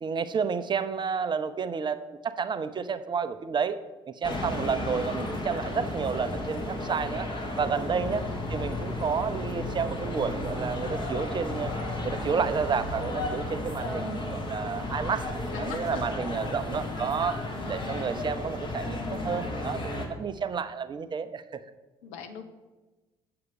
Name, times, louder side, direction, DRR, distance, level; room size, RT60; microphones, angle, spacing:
voice 1, 0.0-3.8 4.1-7.3 7.6-11.7 12.0-15.3 15.6-17.4 17.7-21.6, right 6 dB, 35° right, 11 dB, 0.6 m, -30 dB
sound 1, 4.2-20.1, left 1 dB, 35° left, 1.9 m, -33 dB
voice 2, 8.1-8.5 15.5-16.9 17.5-18.1 22.0-22.4, left 5 dB, 65° left, 7 dB, 0.8 m, -43 dB
7.9 x 6.7 x 5.5 m, 1.2 s
figure-of-eight pair, 50°, 14 cm